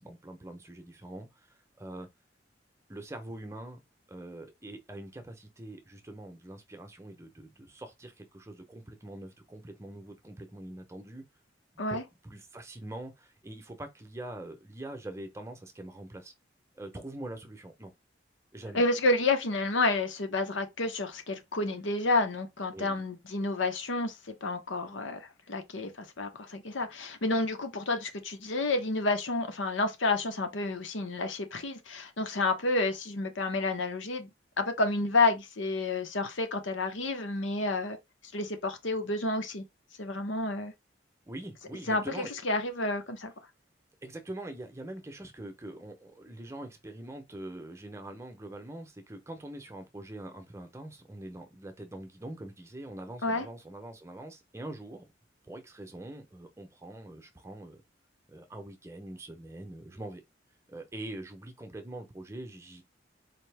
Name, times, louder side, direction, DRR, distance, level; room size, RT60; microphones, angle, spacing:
voice 1, 0.0-1.5 1.8-2.1 2.9-3.8 4.1-11.2 11.9-16.3 16.8-17.9 18.5-18.8 22.7-23.0 41.3-42.3 44.0-55.0 55.4-57.8 58.3-60.2 60.7-62.8, right 1 dB, 15° right, 0.7 m, -43 dB
voice 2, 18.7-34.3 34.6-38.0 38.3-39.6 40.0-40.7 41.9-43.3 53.2-53.4, left 2 dB, 85° left, 0.9 m, -30 dB
4.2 x 2.8 x 3.3 m
head